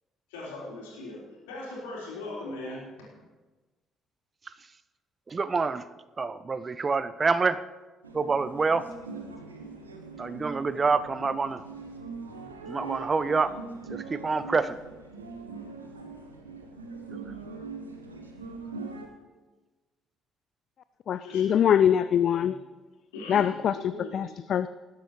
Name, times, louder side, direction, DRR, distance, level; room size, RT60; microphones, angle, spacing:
voice 1, 0.3-3.2 21.1-22.0 22.3-22.5 23.1-24.1, left 2 dB, 70° left, 3.8 m, -40 dB
voice 2, 5.3-5.8 6.2-7.6 8.1-8.9 10.2-11.6 12.7-13.5 14.1-14.7, right 4 dB, 30° right, 0.5 m, -26 dB
sound 1, 8.0-19.1, right 4 dB, 80° right, 1.0 m, -42 dB
voice 3, 21.1-22.6 23.3-24.7, left 9 dB, 50° left, 0.3 m, -24 dB
19.5 x 10.5 x 3.2 m
figure-of-eight pair, 45°, 0 cm